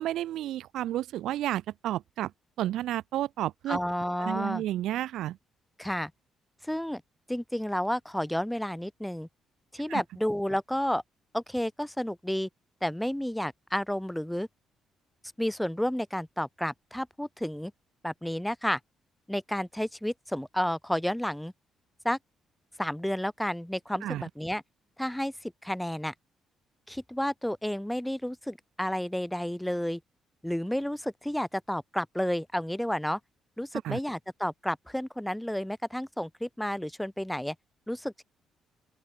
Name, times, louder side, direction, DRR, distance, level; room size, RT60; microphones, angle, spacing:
voice 1, 0.0-2.3 2.6-3.8 4.2-5.4 9.9-10.0 24.0-24.2 33.8-34.0, right 13 dB, 80° right, 0.4 m, -31 dB
voice 2, 3.7-4.6 5.8-6.1 6.6-7.0 7.3-9.3 9.7-11.0 11.3-12.5 12.8-14.5 15.4-17.7 18.0-18.8 19.3-21.5 22.0-22.2 22.8-24.6 25.0-26.1 26.9-30.0 30.4-33.2 33.6-37.6 37.9-38.2, equal, 5° left, 0.6 m, -31 dB
open air
cardioid pair, 90°, 0 cm